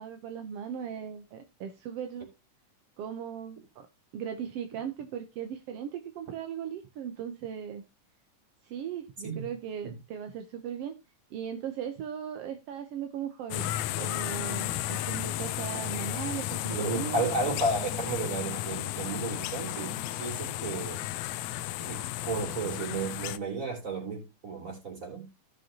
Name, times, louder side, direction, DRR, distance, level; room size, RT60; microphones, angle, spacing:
voice 1, 0.0-2.3 3.0-3.9 4.1-7.8 8.6-11.0 11.3-17.3, right 8 dB, 70° right, 1.5 m, -38 dB
sound 1, 13.5-23.4, left 13 dB, 75° left, 1.7 m, -34 dB
voice 2, 16.7-21.0 21.8-25.3, right 3 dB, 25° right, 3.5 m, -33 dB
16.0 x 6.6 x 2.8 m
omnidirectional pair, 3.7 m